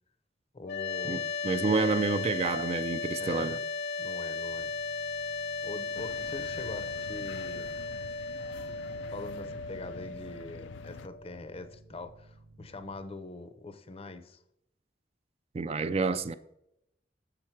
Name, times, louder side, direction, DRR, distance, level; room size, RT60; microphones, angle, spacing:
voice 1, 0.5-1.3 3.2-3.6 4.0-4.7 5.6-7.8 9.1-14.4, left 2 dB, 30° left, 0.6 m, -43 dB
sound 1, 0.6-11.7, left 4 dB, 65° left, 0.8 m, -36 dB
voice 2, 1.4-3.6 15.5-16.3, right 4 dB, 35° right, 0.3 m, -28 dB
sound 2, 4.5-13.0, right 2 dB, 65° right, 0.9 m, -56 dB
sound 3, 5.9-11.1, left 6 dB, 80° left, 0.3 m, -47 dB
7.3 x 5.9 x 4.5 m
head